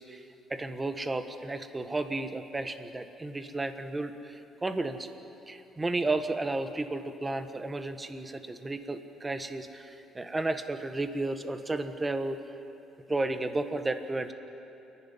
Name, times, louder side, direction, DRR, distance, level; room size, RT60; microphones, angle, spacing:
voice 1, 0.0-5.1 5.5-12.4 13.1-14.3, right 2 dB, 15° right, 9 dB, 1.3 m, -33 dB
28.0 x 11.5 x 9.9 m, 2.9 s
cardioid pair, 115°, 0 cm